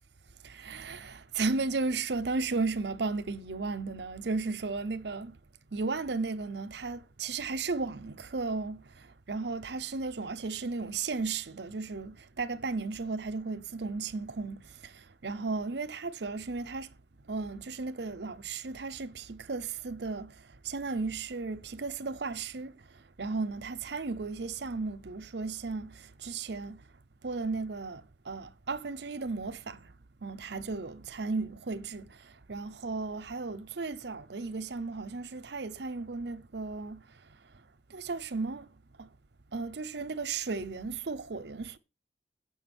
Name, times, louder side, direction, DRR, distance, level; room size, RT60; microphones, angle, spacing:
voice 1, 0.4-5.4 5.7-8.8 9.3-16.9 17.3-20.3 20.6-22.7 23.2-26.8 27.2-29.8 30.2-32.2 32.5-37.0 37.9-38.7 39.0-39.1 39.5-41.8, right 4 dB, 80° right, 0.8 m, -35 dB
7.9 x 5.8 x 6.0 m
head